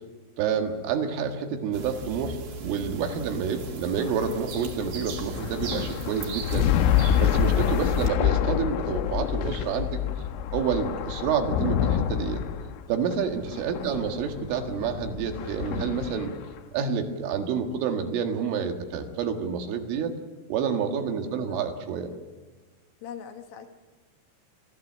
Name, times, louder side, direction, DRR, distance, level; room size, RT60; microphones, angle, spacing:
voice 1, 0.4-6.7 7.2-10.0 10.5-12.4 12.9-16.3 16.7-20.1 20.5-22.1, right 6 dB, 85° right, 4 dB, 4.3 m, -28 dB
sound 1, 1.7-8.1, right 3 dB, 60° right, 4.3 m, -38 dB
sound 2, 3.0-16.6, left 9 dB, 85° left, 3.5 m, -27 dB
voice 2, 13.8-14.2 21.3-21.5 23.0-23.7, left 9 dB, 65° left, 5 dB, 2.6 m, -41 dB
29.0 x 14.5 x 7.5 m, 1.4 s
omnidirectional pair, 5.6 m